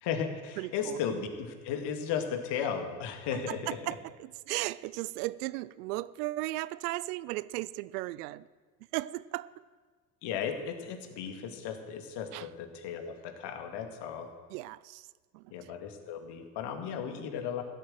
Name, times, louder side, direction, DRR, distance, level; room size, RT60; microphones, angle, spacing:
voice 1, 0.0-4.0 10.2-14.3 15.5-17.6, left 7 dB, 55° left, 2.1 m, -35 dB
voice 2, 0.6-1.0 3.3-8.5 8.9-9.6 12.3-12.5 14.5-15.1 15.3-15.7, right 18 dB, 70° right, 0.6 m, -36 dB
15.5 x 8.4 x 7.6 m
hypercardioid pair, 80°, 48 cm